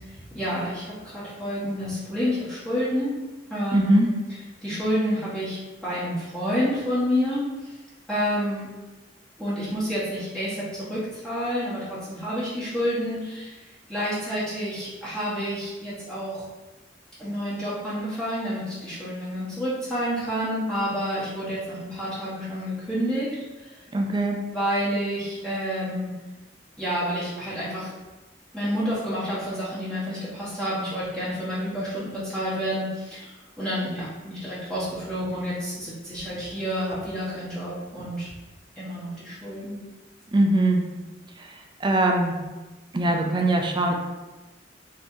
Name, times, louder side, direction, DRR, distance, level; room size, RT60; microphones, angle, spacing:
voice 1, 0.3-3.1 3.5-4.1 4.6-7.4 8.1-8.7 9.4-13.6 13.9-16.4 17.2-23.3 23.6-23.7 24.5-26.1 26.8-27.9 28.5-38.3 38.8-39.8, equal, 5° left, -12 dB, 1.1 m, -29 dB
voice 2, 3.7-4.1 23.9-24.4 40.3-40.8 41.4-41.5 41.8-42.4 42.9-43.9, right 1 dB, 25° right, 2 dB, 0.4 m, -21 dB
4.3 x 3.1 x 2.7 m, 1.2 s
head